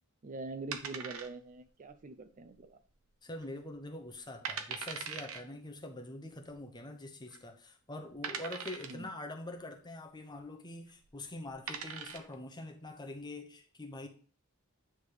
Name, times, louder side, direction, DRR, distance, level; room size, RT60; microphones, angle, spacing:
voice 1, 0.2-2.8 8.9-9.1, right 3 dB, 40° right, 10 dB, 0.4 m, -44 dB
sound 1, 0.7-1.7 1.9-2.0 2.6-3.1 3.4-3.5 4.1-4.2 4.4-5.4 6.5-6.6 7.3-7.4 8.2-9.1 10.9-11.1 11.5-12.3, right 6 dB, 85° right, 0.8 m, -41 dB
voice 2, 3.2-14.1, left 2 dB, 20° left, 4 dB, 1.0 m, -44 dB
8.6 x 3.5 x 4.8 m, 0.42 s
head